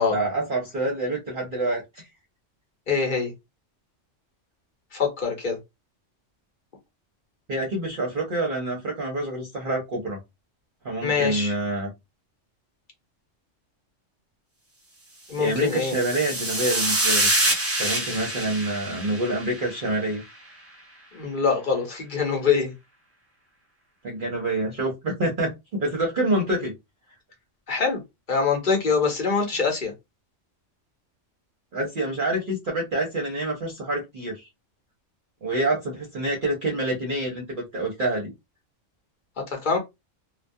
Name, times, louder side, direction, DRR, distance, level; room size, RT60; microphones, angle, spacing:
voice 1, 0.1-1.8 7.5-10.2 10.8-11.9 15.4-17.3 17.8-20.2 24.0-25.5 25.8-26.7 31.7-34.4 35.4-38.3, right 1 dB, 50° right, 0.7 m, -27 dB
voice 2, 2.9-3.3 4.9-5.6 11.0-11.5 15.3-16.0 21.1-22.7 27.7-28.0 28.3-29.9 39.5-39.8, left 5 dB, 45° left, 0.9 m, -24 dB
sound 1, 15.5-20.0, right 1 dB, 20° right, 0.4 m, -26 dB
2.2 x 2.2 x 2.6 m
omnidirectional pair, 1.3 m